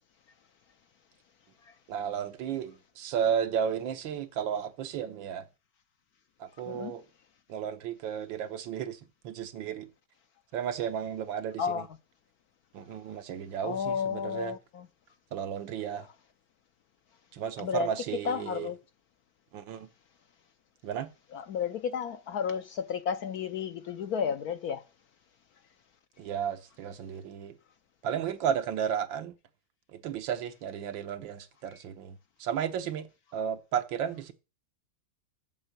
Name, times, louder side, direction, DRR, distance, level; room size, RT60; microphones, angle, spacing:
voice 1, 1.9-5.4 6.4-7.0 7.5-9.9 10.5-11.8 12.7-14.6 15.3-16.1 17.3-18.7 19.5-19.9 20.8-21.1 26.2-27.5 28.0-29.3 29.9-34.3, right 8 dB, 80° right, 1.7 m, -33 dB
voice 2, 13.6-14.9 17.6-17.9 18.2-18.8 21.3-24.8, left 7 dB, 70° left, 0.9 m, -32 dB
7.5 x 6.8 x 6.5 m
omnidirectional pair, 2.1 m